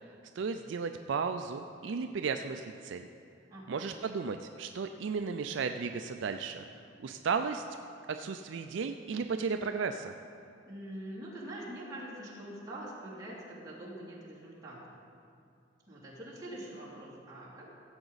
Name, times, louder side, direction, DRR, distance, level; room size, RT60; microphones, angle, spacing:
voice 1, 0.4-3.1 3.7-6.6 7.0-7.6 8.1-10.1, right 5 dB, 70° right, 7 dB, 0.4 m, -34 dB
voice 2, 3.5-3.9 10.7-15.0 15.9-17.7, right 1 dB, 20° right, -8 dB, 2.8 m, -44 dB
16.0 x 7.9 x 4.0 m, 2.4 s
head